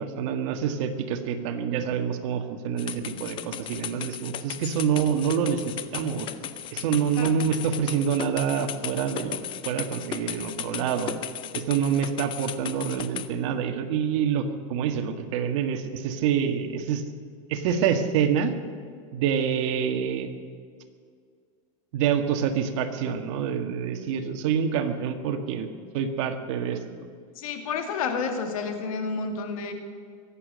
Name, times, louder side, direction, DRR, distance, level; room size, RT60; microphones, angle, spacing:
voice 1, 0.0-6.3 6.7-9.4 9.7-11.2 11.5-17.0 17.5-18.6 19.1-20.3 21.9-25.7 25.9-26.8, right 7 dB, 60° right, 7 dB, 1.7 m, -26 dB
sound 1, 2.8-13.3, left 10 dB, 30° left, 0.7 m, -36 dB
voice 2, 7.2-7.5 27.4-29.7, left 5 dB, 80° left, 5 dB, 2.4 m, -30 dB
22.5 x 8.8 x 6.4 m, 2.1 s
supercardioid pair, 150°, 18 cm